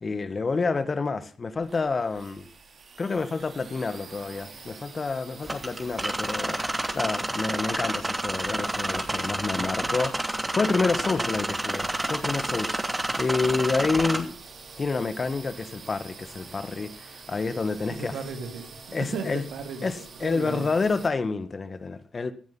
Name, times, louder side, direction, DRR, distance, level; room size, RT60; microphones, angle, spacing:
voice 1, 0.0-2.5 3.0-6.6 6.9-12.8 13.2-14.4 14.8-18.2 18.9-19.4 19.8-22.3, left 4 dB, 45° left, 1.7 m, -28 dB
sound 1, 1.5-21.1, right 4 dB, 60° right, 3.1 m, -47 dB
sound 2, 5.4-14.2, right 1 dB, 20° right, 2.7 m, -29 dB
voice 2, 17.9-20.7, right 5 dB, 90° right, 2.5 m, -36 dB
17.0 x 10.5 x 5.7 m
cardioid pair, 55°, 0 cm